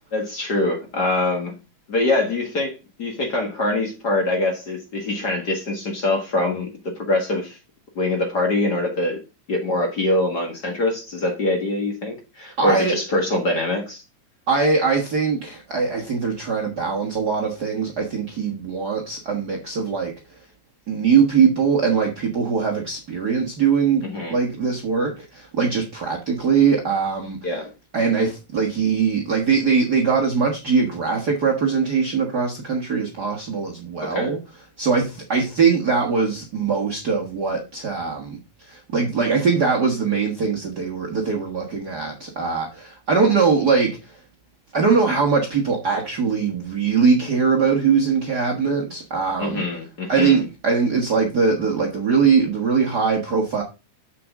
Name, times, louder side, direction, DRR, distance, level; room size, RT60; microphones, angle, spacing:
voice 1, 0.1-1.5 1.9-7.6 8.0-9.2 9.5-14.0 24.0-24.4 27.4-27.7 34.0-34.3 49.4-50.4, left 2 dB, 40° left, 1.9 m, -24 dB
voice 2, 12.6-12.9 14.5-20.1 20.9-27.4 27.9-34.4 34.8-44.2 44.7-49.6 50.1-53.6, right 5 dB, 45° right, 1.4 m, -21 dB
7.3 x 6.8 x 3.6 m
omnidirectional pair, 3.4 m